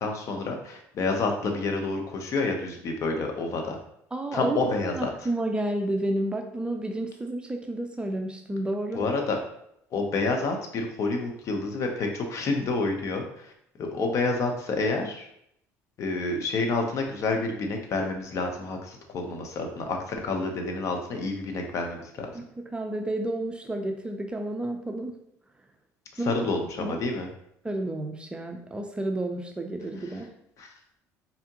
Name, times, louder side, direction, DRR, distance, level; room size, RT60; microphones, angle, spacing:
voice 1, 0.0-3.8 4.3-5.1 8.9-9.4 9.9-13.5 13.8-15.3 16.0-22.3 26.3-27.3 30.6-30.7, left 3 dB, 50° left, 3 dB, 0.9 m, -28 dB
voice 2, 4.1-4.6 4.8-9.0 22.3-25.2 26.2-26.5 26.8-27.0 27.6-30.3, right 1 dB, 15° right, 4 dB, 0.5 m, -31 dB
4.2 x 3.5 x 2.9 m, 0.74 s
supercardioid pair, 95°, 7 cm